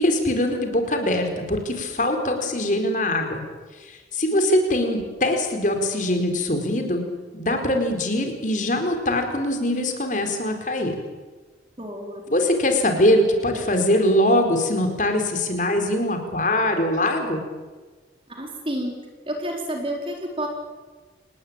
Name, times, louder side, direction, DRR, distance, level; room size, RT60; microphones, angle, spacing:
voice 1, 0.0-3.4 3.8-7.0 7.3-10.9 12.3-17.4, left 1 dB, 45° left, 5 dB, 4.7 m, -22 dB
voice 2, 11.8-12.2 18.4-18.9 19.3-20.5, right 1 dB, 30° right, 2 dB, 4.3 m, -29 dB
28.5 x 19.5 x 9.0 m, 1.4 s
head